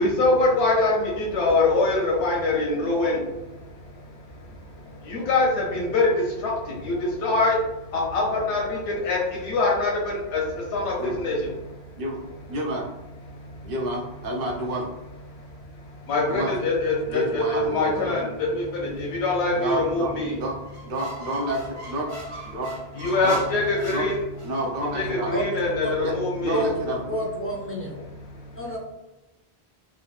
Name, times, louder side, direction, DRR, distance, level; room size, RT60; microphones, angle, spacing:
voice 1, 0.0-11.8 13.3-13.7 15.4-20.4 23.0-24.2 24.9-26.6 28.2-28.4, left 2 dB, 85° left, -3 dB, 0.9 m, -24 dB
voice 2, 12.5-12.9 13.6-14.9 16.3-16.5 17.1-18.2 19.6-20.6 20.8-22.1 22.4-22.7 23.2-23.4 23.9-24.1 24.4-25.3 26.0-27.0, right 1 dB, 60° right, -1 dB, 0.9 m, -29 dB
Squeak, 20.6-24.7, equal, 40° right, 0.5 m, -39 dB
voice 3, 27.1-28.0 28.6-28.8, equal, 20° left, -4 dB, 0.4 m, -28 dB
3.6 x 2.2 x 2.3 m, 1.0 s
omnidirectional pair, 1.1 m